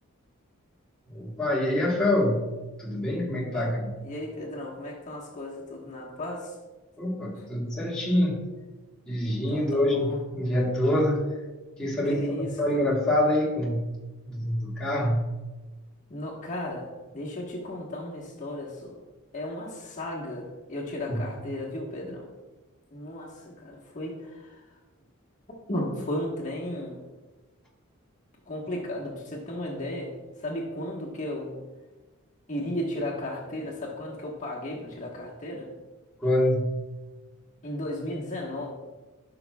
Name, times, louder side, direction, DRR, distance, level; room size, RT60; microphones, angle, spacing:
voice 1, 1.1-3.9 7.0-8.4 9.1-11.4 11.8-14.0 14.2-15.3 21.1-21.2 36.2-36.8, left 1 dB, 5° left, -7 dB, 1.3 m, -26 dB
voice 2, 4.0-6.5 9.5-10.2 12.1-12.8 16.1-16.9 17.1-18.9 19.3-22.3 22.9-24.6 25.7-27.0 28.5-30.1 30.4-31.5 32.5-35.7 37.6-38.7, left 1 dB, 35° left, -3 dB, 1.3 m, -35 dB
13.5 x 5.9 x 2.3 m, 1.2 s
head